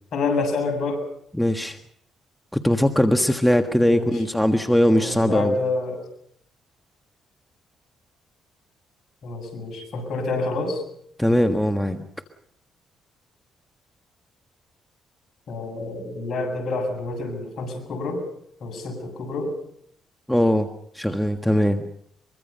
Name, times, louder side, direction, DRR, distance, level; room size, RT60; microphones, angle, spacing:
voice 1, 0.1-1.0 3.9-4.1 4.9-6.1 9.2-10.8 15.5-18.3 18.6-19.5, left 3 dB, 60° left, 4 dB, 7.6 m, -28 dB
voice 2, 1.3-1.8 2.5-5.5 11.2-12.0 20.3-20.7 20.9-21.8, equal, 5° left, 6 dB, 1.5 m, -20 dB
23.5 x 23.5 x 5.5 m, 0.67 s
cardioid pair, 90°, 0 cm